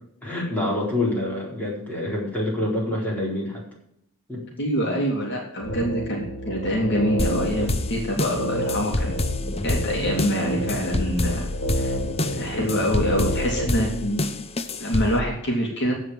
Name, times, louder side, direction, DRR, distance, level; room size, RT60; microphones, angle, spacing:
voice 1, 0.2-3.6 4.3-4.4, left 1 dB, 10° left, -4 dB, 4.4 m, -26 dB
voice 2, 4.6-9.1 9.6-11.5 11.8-11.9 12.4-14.3 14.8-15.9, equal, 60° left, -1 dB, 2.9 m, -25 dB
sound 1, 5.6-13.7, equal, 75° left, 3.1 m, -30 dB
sound 2, 7.2-15.2, left 2 dB, 30° left, 0.8 m, -28 dB
15.0 x 5.1 x 7.6 m, 0.74 s
head